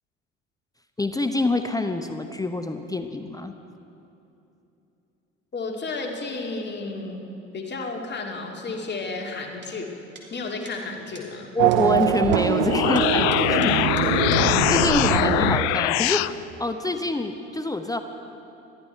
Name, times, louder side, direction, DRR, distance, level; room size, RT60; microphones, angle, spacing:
voice 1, 1.0-3.5 11.5-13.8 14.4-18.0, left 2 dB, 10° left, 7 dB, 0.8 m, -26 dB
voice 2, 5.5-7.3 7.5-9.9 10.3-11.5 14.8-14.9 15.2-15.3, left 3 dB, 30° left, 1 dB, 2.4 m, -32 dB
sound 1, 9.6-9.7 10.2-10.3 10.7-10.8 11.2-11.3 11.7-11.8 12.3-12.4 13.0-14.7 14.9-15.0, right 4 dB, 30° right, 3.0 m, -45 dB
Race car auto racing / Accelerating revving vroom, 11.6-16.3, right 15 dB, 55° right, 0.6 m, -24 dB
sound 2, 12.5-16.3, left 17 dB, 60° left, 0.5 m, -22 dB
21.5 x 14.0 x 4.6 m, 2.8 s
figure-of-eight pair, 65°, 36 cm